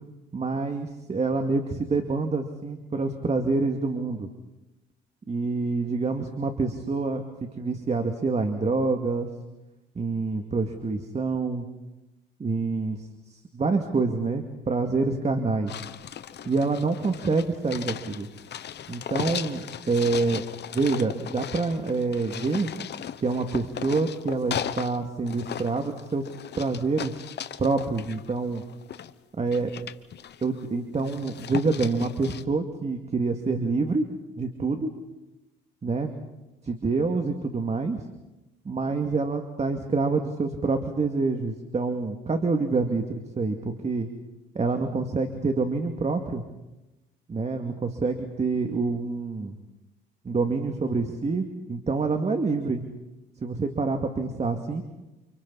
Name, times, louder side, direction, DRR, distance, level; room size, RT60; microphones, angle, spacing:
voice 1, 0.3-4.3 5.3-9.3 10.0-11.7 12.4-15.8 16.5-18.3 18.9-20.4 20.7-22.7 23.2-26.3 26.6-27.2 27.6-28.6 29.4-29.7 30.4-34.1 34.4-34.9 35.8-36.1 36.6-38.0 38.6-44.1 44.5-46.4 47.3-49.6 50.2-52.8 53.4-54.8, right 3 dB, 35° right, 5 dB, 2.4 m, -27 dB
sound 1, 15.7-25.0 25.3-29.1 29.5-30.6 31.0-32.4, left 9 dB, 60° left, 1.2 m, -37 dB
29.5 x 29.5 x 4.2 m, 0.99 s
cardioid pair, 90°, 20 cm